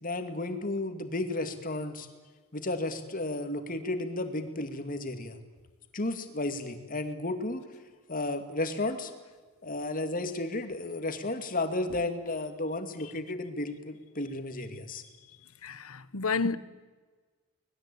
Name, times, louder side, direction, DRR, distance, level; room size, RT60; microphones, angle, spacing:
voice 1, 0.0-2.1 2.5-5.4 5.9-7.7 8.1-9.1 9.6-15.0, left 2 dB, 40° left, 2.5 m, -33 dB
voice 2, 15.6-16.6, left 4 dB, 85° left, 1.1 m, -30 dB
25.0 x 20.5 x 8.7 m
head